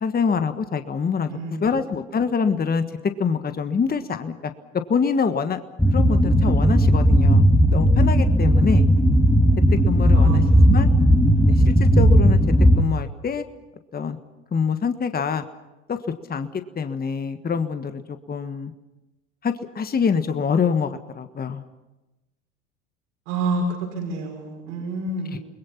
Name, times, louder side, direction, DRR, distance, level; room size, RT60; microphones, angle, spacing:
voice 1, 0.0-2.8 3.2-4.3 4.9-5.6 5.9-7.4 7.7-8.9 9.9-10.9 11.5-12.4 12.8-13.4 13.9-14.2 14.5-15.4 15.9-16.0 16.3-16.5 16.7-18.7 19.4-21.6 25.3-25.4, left 6 dB, 25° left, 9 dB, 1.6 m, -25 dB
voice 2, 1.3-1.7 10.1-10.7 23.3-23.6 23.9-25.4, right 3 dB, 75° right, 1 dB, 6.0 m, -29 dB
sound 1, 5.8-12.8, equal, 5° left, 2.6 m, -16 dB
29.5 x 21.0 x 5.9 m, 1.0 s
hypercardioid pair, 70°, 36 cm